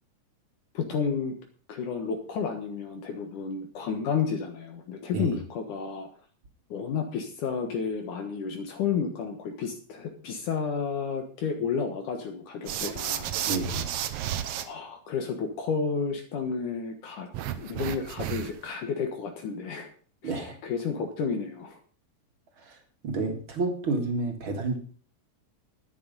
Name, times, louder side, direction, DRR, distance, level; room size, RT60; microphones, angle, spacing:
voice 1, 0.7-1.4 1.7-6.1 6.7-13.3 14.6-17.3 17.6-19.9 20.2-21.8, left 6 dB, 65° left, 5 dB, 2.8 m, -31 dB
sound 1, 12.7-14.6 17.3-18.7, right 11 dB, 80° right, 1.4 m, -32 dB
voice 2, 13.5-13.9 20.2-20.6 22.6-22.8 23.0-24.8, right 3 dB, 40° right, 5 dB, 2.4 m, -30 dB
12.0 x 10.0 x 5.4 m, 0.43 s
omnidirectional pair, 4.0 m